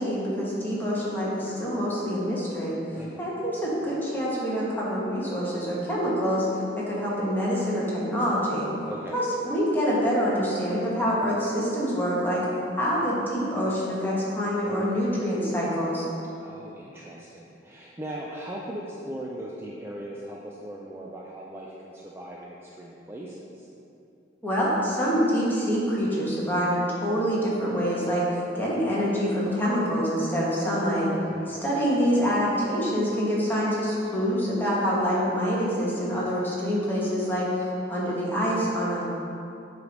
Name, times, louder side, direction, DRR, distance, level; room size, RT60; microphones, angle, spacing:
voice 1, 0.0-2.8 3.2-6.5 6.8-8.7 9.1-12.4 12.8-16.0 24.4-31.1 31.5-39.0, equal, 10° left, -7 dB, 1.4 m, -26 dB
voice 2, 3.0-3.4 8.8-9.2 16.4-23.7 31.3-31.6, right 1 dB, 15° right, -4 dB, 0.4 m, -39 dB
7.7 x 3.3 x 5.2 m, 2.7 s
head